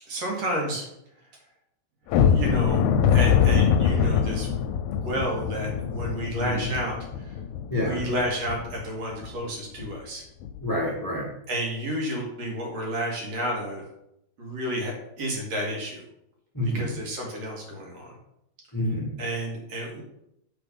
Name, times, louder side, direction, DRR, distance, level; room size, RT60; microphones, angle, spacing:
voice 1, 0.1-0.9 2.1-2.8 3.1-7.4 7.8-10.3 11.5-13.8 14.4-16.0 16.6-18.1 19.2-20.0, equal, 60° right, -1 dB, 2.7 m, -31 dB
sound 1, 2.1-8.8 9.2-9.3 9.8-9.9 10.4-10.6, left 7 dB, 80° left, 1.9 m, -23 dB
voice 2, 6.4-6.7 7.7-8.0 10.6-11.3 16.5-16.9 18.7-19.1, left 1 dB, 15° left, -3 dB, 0.6 m, -27 dB
7.5 x 4.5 x 5.3 m, 0.81 s
omnidirectional pair, 3.6 m